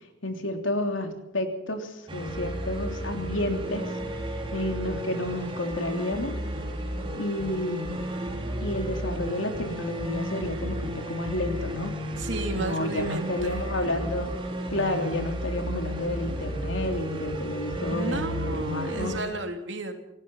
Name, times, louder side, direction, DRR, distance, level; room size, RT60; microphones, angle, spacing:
voice 1, 0.2-3.9 4.5-6.3 7.2-8.1 8.6-11.9 12.6-14.3 14.7-19.1, left 1 dB, 90° left, 5 dB, 3.3 m, -30 dB
sound 1, 2.1-19.2, right 1 dB, 30° right, 4.0 m, -33 dB
voice 2, 12.2-13.5 13.8-14.1 17.9-19.9, right 2 dB, 70° right, 5 dB, 3.0 m, -33 dB
26.5 x 18.0 x 5.7 m, 0.90 s
head